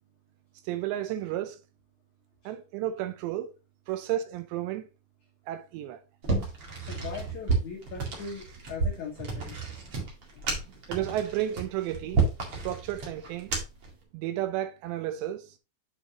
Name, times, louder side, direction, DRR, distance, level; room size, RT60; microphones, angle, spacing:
voice 1, 0.7-1.6 2.5-3.5 3.9-4.9 5.5-6.0 10.9-12.2 12.5-13.5 14.1-15.6, right 12 dB, 80° right, 2.7 m, -32 dB
sound 1, 6.2-13.9, right 4 dB, 45° right, 1.9 m, -31 dB
voice 2, 6.8-9.6 10.3-10.6, left 5 dB, 75° left, 1.7 m, -40 dB
7.3 x 6.5 x 2.8 m
omnidirectional pair, 5.4 m